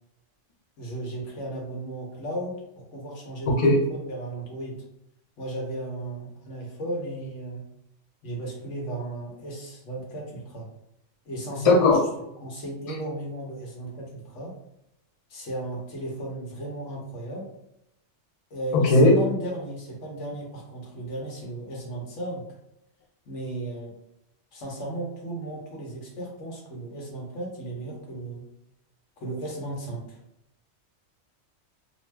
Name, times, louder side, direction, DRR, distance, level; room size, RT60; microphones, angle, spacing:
voice 1, 0.8-4.8 5.4-7.6 8.2-10.7 11.2-12.0 12.4-14.5 15.3-17.4 18.5-22.4 23.3-23.9 24.5-28.4 29.2-30.2, right 1 dB, 85° left, -2 dB, 1.2 m, -35 dB
voice 2, 3.5-3.8 11.6-12.0 18.7-19.1, left 2 dB, 45° left, 0 dB, 0.5 m, -17 dB
2.6 x 2.1 x 3.3 m, 0.82 s
omnidirectional pair, 1.2 m